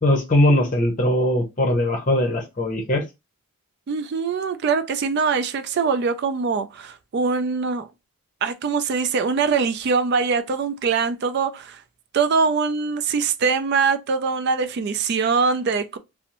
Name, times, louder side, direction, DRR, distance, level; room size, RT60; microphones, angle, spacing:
voice 1, 0.0-3.0, left 1 dB, 35° left, 0.7 m, -20 dB
voice 2, 3.9-7.9 8.4-11.8 12.1-16.0, right 5 dB, 50° right, 0.3 m, -23 dB
2.6 x 2.0 x 2.9 m
head